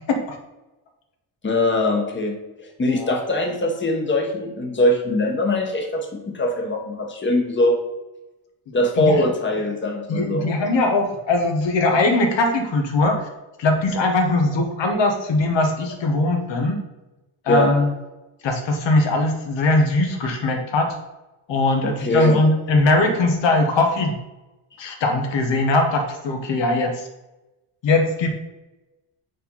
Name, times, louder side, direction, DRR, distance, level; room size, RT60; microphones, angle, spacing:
voice 1, 1.4-7.8 8.7-10.5 17.5-17.7 21.8-22.4, left 1 dB, 25° left, 2 dB, 1.2 m, -22 dB
voice 2, 8.7-9.3 10.1-13.3 13.6-16.8 17.4-17.9 18.4-21.0 21.5-24.2 24.8-27.1 27.8-28.3, left 2 dB, 75° left, 3 dB, 1.2 m, -20 dB
5.3 x 4.3 x 5.5 m, 1.0 s
cardioid pair, 125°, 45 cm